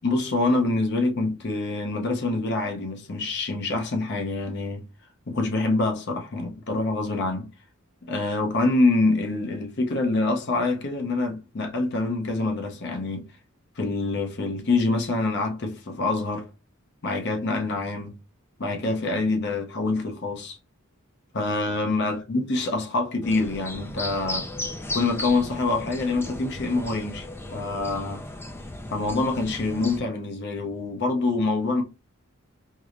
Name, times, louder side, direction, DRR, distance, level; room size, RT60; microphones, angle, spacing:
voice 1, 0.0-4.8 5.3-7.5 8.1-13.3 13.8-16.5 17.0-18.1 18.6-20.6 21.3-24.5 24.9-28.2 28.9-31.8, left 2 dB, 55° left, 0.6 m, -26 dB
sound 1, 23.2-30.0, left 2 dB, 10° left, 0.3 m, -35 dB
4.6 x 2.0 x 2.4 m
head